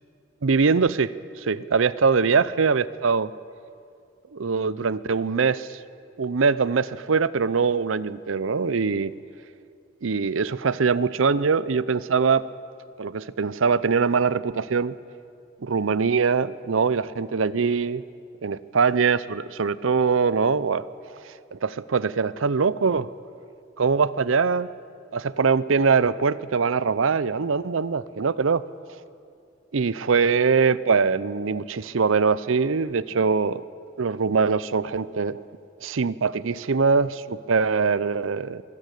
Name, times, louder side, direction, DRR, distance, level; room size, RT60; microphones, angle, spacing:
voice 1, 0.4-3.3 4.3-5.8 6.2-9.1 10.0-12.4 13.0-14.9 15.6-18.0 18.4-20.9 21.2-23.1 23.8-24.7 25.1-28.6 29.7-33.6 34.0-35.4 35.8-38.6, right 5 dB, 85° right, 18 dB, 0.6 m, -22 dB
23.0 x 15.5 x 8.3 m, 2.4 s
head